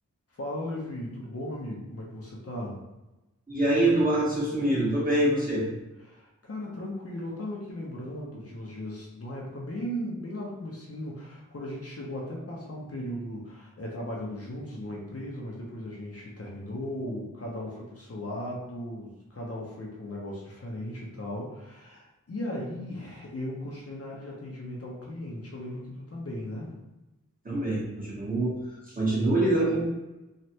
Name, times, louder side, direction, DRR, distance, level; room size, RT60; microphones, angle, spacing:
voice 1, 0.3-2.8 6.1-26.8, left 1 dB, 45° left, -3 dB, 0.8 m, -37 dB
voice 2, 3.5-5.7 27.4-28.5 28.9-29.8, right 1 dB, 25° right, -6 dB, 1.4 m, -25 dB
3.2 x 2.5 x 2.8 m, 1.0 s
cardioid pair, 40°, 32 cm